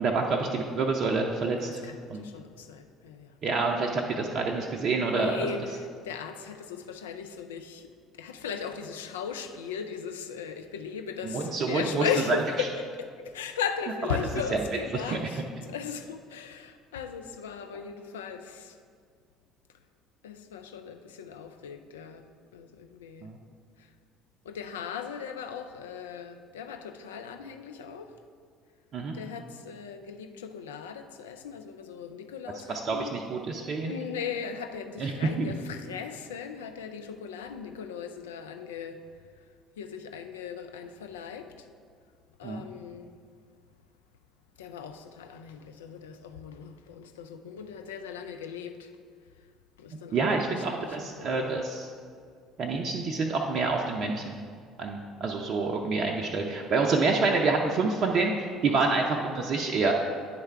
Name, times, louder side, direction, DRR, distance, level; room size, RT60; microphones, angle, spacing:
voice 1, 0.0-1.8 2.1-2.3 3.4-5.4 11.2-12.4 15.1-15.2 23.2-23.4 28.9-29.2 32.7-33.9 35.0-35.1 35.4-35.5 42.4-42.6 50.1-51.9 52.6-54.4 54.8-58.3 58.6-59.9, right 3 dB, 45° right, 0.5 m, -27 dB
voice 2, 1.6-3.4 4.9-7.9 8.2-18.8 20.2-22.2 22.5-23.3 23.8-23.9 24.4-28.1 29.1-33.2 33.8-39.0 39.8-41.7 42.4-43.1 44.6-48.9 49.8-51.7 58.7-59.1, left 7 dB, 75° left, 0.3 m, -38 dB
9.5 x 3.3 x 4.5 m
figure-of-eight pair, 55°, 0 cm